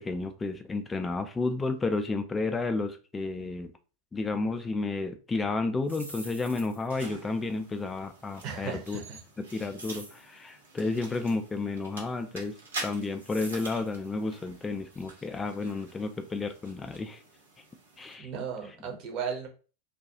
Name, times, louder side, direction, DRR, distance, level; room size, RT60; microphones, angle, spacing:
voice 1, 0.0-3.7 4.1-9.0 9.4-17.2 18.0-18.3, left 3 dB, 15° left, 7 dB, 0.3 m, -32 dB
sound 1, 5.7-7.0 9.8-10.3 13.2-13.9, right 1 dB, 85° right, 0.6 m, -45 dB
sound 2, 6.9-18.1, right 2 dB, 70° right, 1.0 m, -46 dB
voice 2, 8.4-9.2 18.2-19.5, right 6 dB, 40° right, 2 dB, 0.8 m, -35 dB
2.4 x 2.3 x 2.8 m, 0.35 s
figure-of-eight pair, 90°, 0 cm